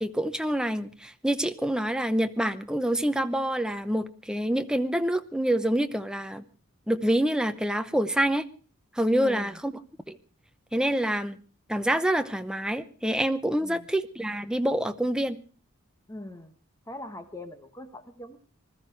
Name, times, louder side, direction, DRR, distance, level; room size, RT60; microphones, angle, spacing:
voice 1, 0.0-6.4 6.9-8.5 8.9-9.7 10.1-10.2 10.7-11.4 11.7-15.4, right 1 dB, 5° right, 9 dB, 0.8 m, -26 dB
voice 2, 9.1-9.6 13.6-13.9 16.1-16.5 16.9-18.4, left 1 dB, 15° left, 9 dB, 1.1 m, -41 dB
20.5 x 13.0 x 4.6 m, 0.38 s
head